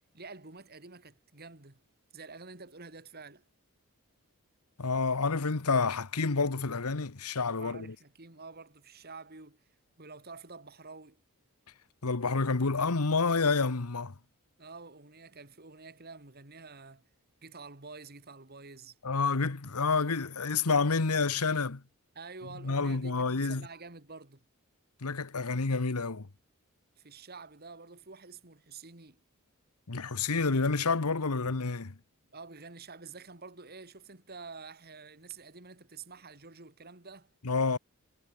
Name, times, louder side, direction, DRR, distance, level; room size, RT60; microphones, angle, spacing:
voice 1, 0.1-1.8 2.1-3.4 7.6-9.6 10.0-11.2 14.6-17.0 17.4-19.0 22.1-24.4 27.0-29.2 32.3-37.3, right 4 dB, 45° right, 2.6 m, -48 dB
voice 2, 4.8-7.9 12.0-14.1 19.0-21.8 22.6-23.7 25.0-26.3 29.9-31.9 37.4-37.8, left 4 dB, 85° left, 1.2 m, -29 dB
head